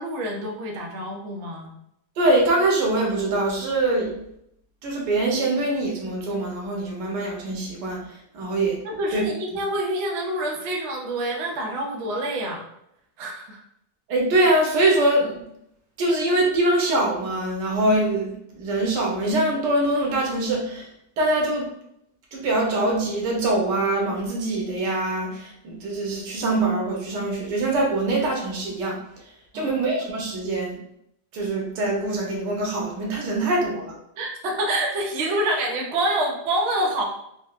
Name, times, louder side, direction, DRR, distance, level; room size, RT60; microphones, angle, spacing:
voice 1, 0.0-1.7 8.8-12.7 13.2-13.6 29.5-29.9 34.2-37.0, right 1 dB, 65° right, 0 dB, 0.7 m, -27 dB
voice 2, 2.2-4.2 4.8-8.0 8.3-8.8 9.1-9.2 14.1-15.4 16.0-20.9 21.2-21.7 22.3-29.0 29.5-30.8 31.3-33.9, right 2 dB, 85° right, -1 dB, 1.4 m, -23 dB
4.0 x 2.1 x 2.3 m, 0.75 s
omnidirectional pair, 1.8 m